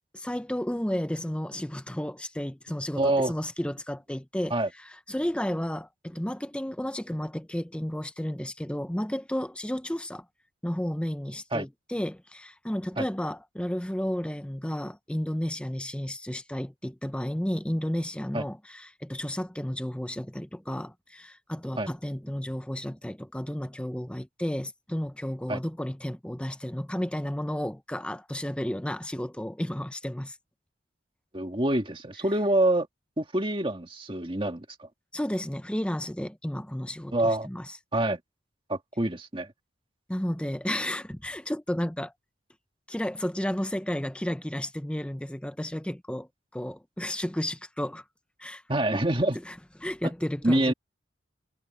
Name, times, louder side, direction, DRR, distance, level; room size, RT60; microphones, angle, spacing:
voice 1, 0.0-10.2 10.6-30.4 35.1-37.8 40.1-42.1 42.9-48.0 48.4-48.6 49.5-49.6 49.8-50.7, equal, 5° left, 0.7 m, -32 dB
voice 2, 3.0-3.3 4.5-4.7 11.5-11.7 13.0-13.1 18.3-18.5 21.8-21.9 25.5-25.6 31.3-32.9 33.2-34.9 37.1-37.5 37.9-38.2 38.7-39.5 48.7-49.4 50.4-50.7, right 1 dB, 25° right, 1.9 m, -26 dB
head